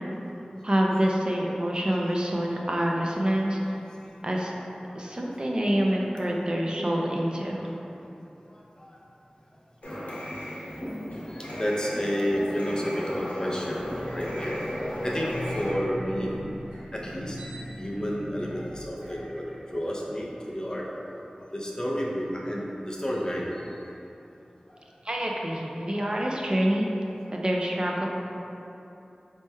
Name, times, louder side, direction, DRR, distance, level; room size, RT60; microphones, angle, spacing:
voice 1, 0.6-3.8 4.2-4.5 4.9-7.7 25.0-26.9 27.3-28.1, equal, 35° right, -2 dB, 0.4 m, -26 dB
Space Invaders Arcade Game, 9.8-15.7, equal, 65° left, 0.7 m, -34 dB
voice 2, 11.6-13.8 14.1-14.6 15.0-16.3 16.9-17.4 17.8-19.5 19.7-20.3 20.5-20.9 21.5-23.7, equal, 30° left, -4 dB, 0.6 m, -30 dB
sound 1, 13.7-20.3, equal, 70° right, 1.1 m, -41 dB
4.3 x 3.0 x 2.2 m, 2.9 s
wide cardioid pair, 45°, 3 cm